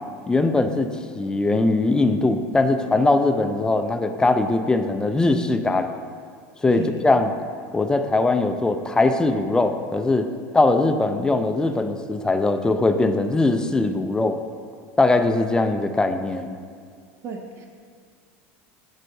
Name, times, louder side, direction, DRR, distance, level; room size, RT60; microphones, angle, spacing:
voice 1, 0.3-5.9 6.6-7.3 7.7-10.3 10.5-14.4 15.0-16.6, left 2 dB, 10° left, 7 dB, 0.3 m, -21 dB
voice 2, 17.2-17.7, right 5 dB, 40° right, 3 dB, 0.5 m, -32 dB
7.3 x 5.5 x 2.6 m, 2.1 s
supercardioid pair, 115°, 7 cm